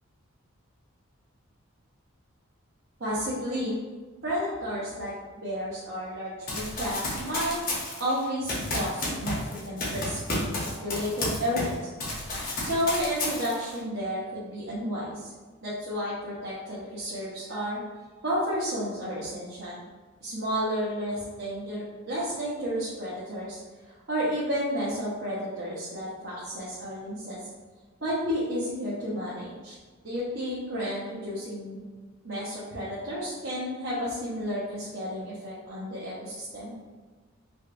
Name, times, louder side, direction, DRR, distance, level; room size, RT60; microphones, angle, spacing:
voice 1, 3.0-3.8 4.2-7.6 8.0-11.9 12.6-15.3 15.6-17.8 18.2-19.8 20.2-27.4 28.0-29.8 30.0-31.8 32.2-36.7, equal, 60° right, -9 dB, 0.9 m, -32 dB
Run, 6.5-11.7 12.0-13.8, left 2 dB, 40° left, 0.8 m, -31 dB
5.0 x 2.3 x 2.5 m, 1.3 s
head